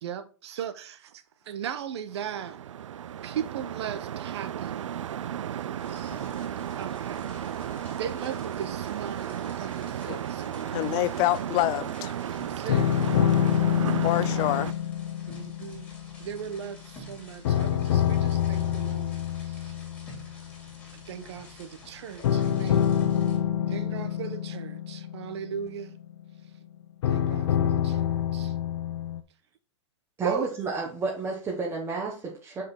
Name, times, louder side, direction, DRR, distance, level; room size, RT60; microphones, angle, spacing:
voice 1, 0.0-2.6 3.2-4.8 5.9-6.2 6.8-7.2 7.9-10.8 12.5-12.9 15.3-15.9 16.2-19.7 20.9-23.0 23.7-26.0 27.1-28.5 30.2-30.5, right 9 dB, 60° right, 0.9 m, -37 dB
sound 1, 2.1-14.7, right 10 dB, 85° right, 0.4 m, -34 dB
sound 2, 5.8-23.4, equal, 10° left, 2.4 m, -50 dB
voice 2, 10.7-12.1 14.0-14.7, left 17 dB, 30° left, 0.3 m, -26 dB
sound 3, 12.7-17.0 17.4-20.7 22.2-26.2 27.0-29.2, left 10 dB, 65° left, 0.8 m, -27 dB
voice 3, 30.2-32.6, right 4 dB, 15° right, 1.3 m, -31 dB
5.9 x 5.1 x 4.4 m
hypercardioid pair, 140°, 16 cm